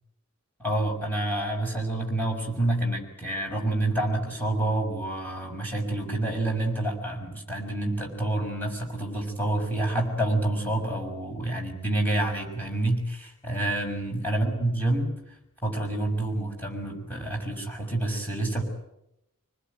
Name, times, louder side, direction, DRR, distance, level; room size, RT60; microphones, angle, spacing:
voice 1, 0.6-15.1 15.6-18.6, right 1 dB, 10° left, 0 dB, 6.1 m, -28 dB
25.5 x 20.0 x 9.3 m, 0.84 s
head